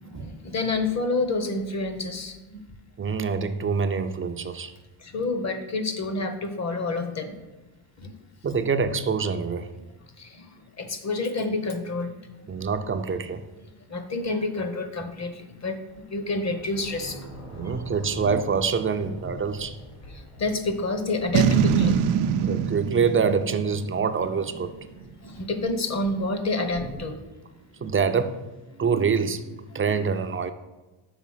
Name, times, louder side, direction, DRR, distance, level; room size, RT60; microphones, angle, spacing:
voice 1, 0.0-2.6 5.0-7.4 8.0-8.1 10.2-10.5 10.8-12.1 13.9-15.8 16.1-17.2 20.4-22.0 25.2-27.2, left 3 dB, 35° left, 8 dB, 0.8 m, -28 dB
voice 2, 3.0-4.7 8.4-9.7 12.5-13.4 17.5-19.8 22.4-24.7 27.8-28.4 28.7-30.5, right 5 dB, 30° right, 9 dB, 0.4 m, -25 dB
Thunder / Rain, 12.3-12.4 15.3-27.1, right 1 dB, 70° left, 2.4 m, -44 dB
Boom, 21.3-24.7, right 8 dB, 85° right, 0.6 m, -23 dB
6.0 x 5.0 x 5.5 m, 1.1 s
cardioid pair, 130°, 49 cm